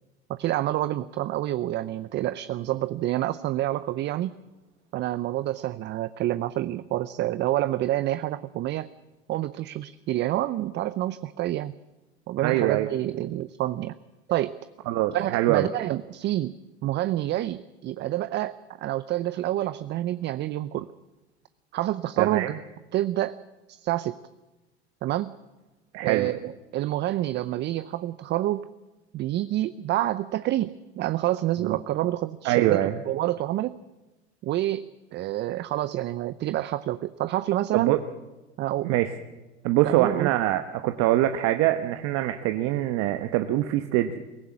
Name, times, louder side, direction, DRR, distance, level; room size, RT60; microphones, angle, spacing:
voice 1, 0.3-4.3 4.9-8.9 9.3-11.7 12.3-14.0 14.3-14.6 15.1-20.9 21.7-22.5 22.9-23.4 23.7-24.2 25.0-25.3 26.0-28.6 29.1-33.8 34.4-38.0 38.6-38.9 39.8-40.3, right 14 dB, 30° right, 14 dB, 0.6 m, -28 dB
voice 2, 12.4-12.9 14.9-15.7 22.2-22.5 25.9-26.3 31.6-31.8 32.4-33.0 37.7-38.0 38.8-39.1 39.6-44.1, right 14 dB, 50° right, 8 dB, 1.1 m, -24 dB
22.5 x 15.0 x 8.7 m, 1.1 s
hypercardioid pair, 100°, 34 cm